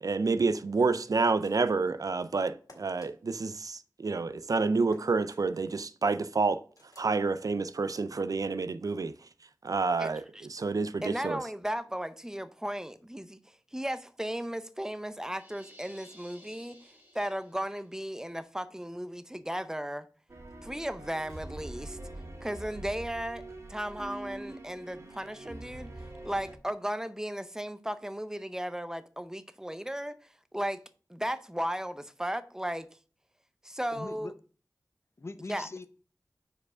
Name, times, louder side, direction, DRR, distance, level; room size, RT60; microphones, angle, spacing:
voice 1, 0.0-6.6 7.0-9.1 9.6-11.4, right 4 dB, 65° right, 0.4 m, -29 dB
sound 1, 1.3-1.8 2.7-3.1 4.9-5.4 6.8-7.1, left 2 dB, 70° left, 1.9 m, -57 dB
voice 2, 11.0-13.4 13.7-16.8 17.1-20.1 20.6-22.0 22.4-23.4 23.7-25.9 26.2-30.1 30.5-30.8 31.1-32.9 33.6-34.3 35.5-35.9, equal, 10° right, 0.6 m, -35 dB
sound 2, 15.3-17.9, equal, 25° right, 1.8 m, -56 dB
sound 3, 20.3-26.6, right 2 dB, 45° right, 1.4 m, -44 dB
voice 3, 33.9-34.3 35.2-35.9, left 2 dB, 45° left, 0.6 m, -41 dB
4.9 x 4.6 x 6.1 m
wide cardioid pair, 50°, 6 cm